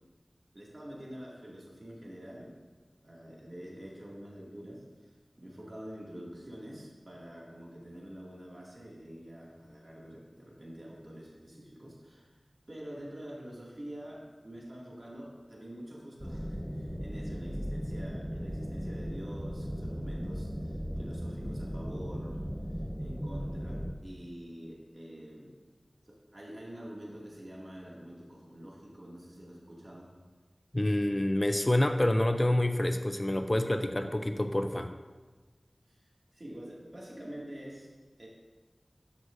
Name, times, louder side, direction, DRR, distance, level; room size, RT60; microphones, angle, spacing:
voice 1, 0.5-2.5 3.0-5.1 5.4-12.3 12.7-22.4 23.0-25.6 26.1-30.1 35.9-36.0 36.3-37.9 38.2-38.3, equal, 50° right, -4 dB, 2.3 m, -46 dB
sound 1, 16.2-23.9, equal, ahead, 0.8 m, -37 dB
voice 2, 30.7-34.9, left 1 dB, 30° left, 7 dB, 0.5 m, -27 dB
12.5 x 6.2 x 2.6 m, 1.3 s
wide cardioid pair, 45°, 0 cm